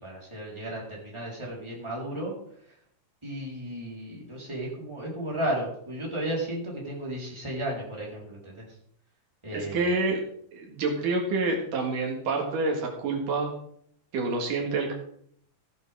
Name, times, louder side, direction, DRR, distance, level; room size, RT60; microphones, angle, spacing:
voice 1, 0.0-2.8 3.2-8.8 9.4-10.0, right 1 dB, 10° right, -4 dB, 4.0 m, -34 dB
voice 2, 9.5-10.2 10.5-13.5 14.1-14.9, right 3 dB, 75° right, 0 dB, 3.4 m, -27 dB
15.5 x 11.0 x 3.6 m, 0.66 s
omnidirectional pair, 3.8 m